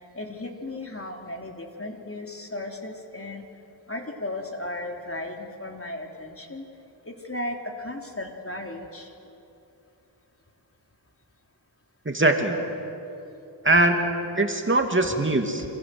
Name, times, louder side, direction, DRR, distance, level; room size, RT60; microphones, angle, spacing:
voice 1, 0.1-3.5 3.9-6.6 7.1-9.1 15.0-15.2, left 1 dB, 30° left, 2 dB, 3.5 m, -35 dB
voice 2, 12.0-12.7 13.6-15.6, right 2 dB, 25° right, 4 dB, 2.6 m, -22 dB
28.5 x 26.5 x 7.9 m, 2.8 s
cardioid pair, 60°, 43 cm